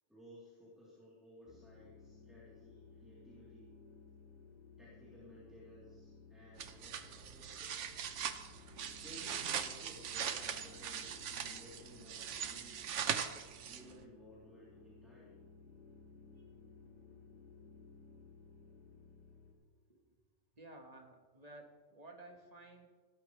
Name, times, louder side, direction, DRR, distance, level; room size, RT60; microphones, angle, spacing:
voice 1, 0.1-3.8 4.8-7.9 8.4-13.4 13.7-15.4, equal, ahead, -8 dB, 3.4 m, -58 dB
sound 1, 1.5-19.5, left 4 dB, 50° left, 2.5 m, -58 dB
sound 2, 6.6-14.0, right 8 dB, 85° right, 1.1 m, -41 dB
voice 2, 20.5-22.9, right 2 dB, 35° right, 2 dB, 1.7 m, -54 dB
17.5 x 12.0 x 3.3 m, 1.4 s
omnidirectional pair, 1.2 m